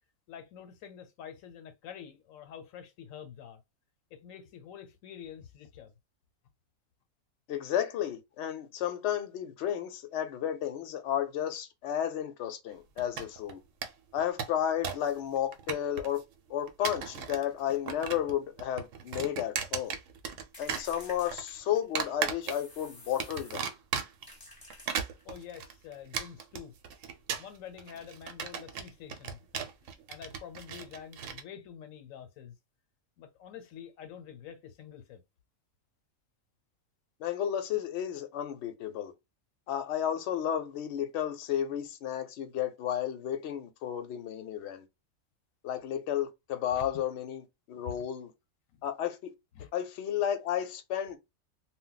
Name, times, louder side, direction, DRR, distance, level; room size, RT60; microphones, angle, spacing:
voice 1, 0.3-3.6 4.1-5.9 25.2-26.7 27.4-32.6 33.2-35.2 46.7-47.0 47.9-48.1 48.7-48.8 49.5-49.7, left 8 dB, 90° left, 1.0 m, -47 dB
voice 2, 7.5-13.6 14.1-16.2 16.5-20.0 20.6-23.7 37.2-39.1 39.7-44.9 45.6-48.3 48.8-49.3 49.7-51.2, left 10 dB, 65° left, 0.8 m, -32 dB
sound 1, 13.0-13.5 13.8-13.9 14.2-15.1 15.4-16.2 16.7-17.4 17.7-18.3 18.6-20.4 20.7-21.4 22.0-22.8 23.2-24.3 24.7-31.4, right 7 dB, 75° right, 0.9 m, -36 dB
sound 2, 20.5-22.0 22.4-23.7 24.3-25.4, left 1 dB, 20° left, 0.8 m, -51 dB
2.2 x 2.0 x 3.8 m
omnidirectional pair, 1.4 m